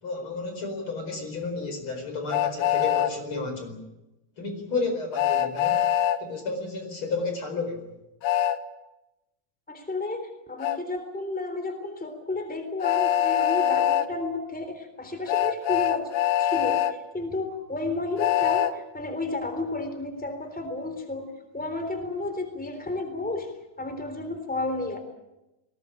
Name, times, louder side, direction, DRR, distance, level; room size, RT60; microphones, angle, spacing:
voice 1, 0.0-3.8 4.4-5.8 6.2-7.9, left 3 dB, 45° left, 6 dB, 5.4 m, -32 dB
Train, 2.3-3.1 5.2-6.2 8.2-8.6 10.6-10.8 12.8-14.1 15.3-16.9 18.2-18.7, left 11 dB, 85° left, 2.4 m, -23 dB
voice 2, 9.7-16.1 16.4-16.9 17.1-21.3 21.5-23.5 23.8-25.0, left 2 dB, 5° left, 7 dB, 3.3 m, -32 dB
21.0 x 19.0 x 9.9 m, 0.97 s
omnidirectional pair, 3.4 m